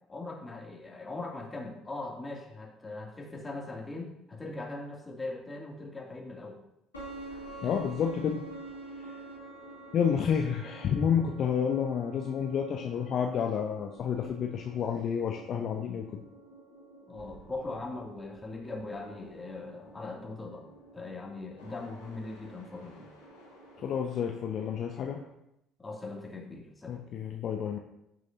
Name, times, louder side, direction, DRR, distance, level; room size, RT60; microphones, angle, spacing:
voice 1, 0.1-6.6 17.1-20.6 20.9-23.1 25.8-27.1, left 2 dB, 20° left, -1 dB, 2.6 m, -40 dB
sound 1, 6.9-25.3, right 2 dB, 80° left, 2.9 m, -49 dB
voice 2, 7.6-8.4 9.0-9.1 9.9-16.2 23.8-25.2 26.9-27.8, left 7 dB, 45° left, 3 dB, 0.8 m, -30 dB
15.0 x 6.2 x 2.8 m, 0.81 s
figure-of-eight pair, 55°, 0 cm